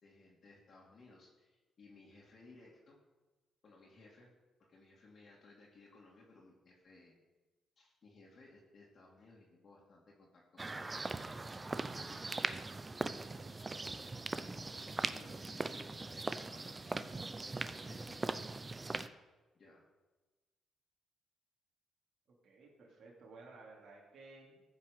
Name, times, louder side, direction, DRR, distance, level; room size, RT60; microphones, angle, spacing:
voice 1, 0.0-3.0 3.6-4.3 4.7-7.1 7.8-10.9 11.5-12.6 13.3-14.0 14.8-18.2 19.5-19.9, left 3 dB, 50° left, -3 dB, 2.6 m, -61 dB
sound 1, 10.6-19.1, right 3 dB, 25° right, 0.6 m, -40 dB
voice 2, 22.4-24.6, right 3 dB, 60° right, -2 dB, 2.7 m, -56 dB
14.5 x 5.9 x 6.7 m, 1.2 s
cardioid pair, 90°, 0 cm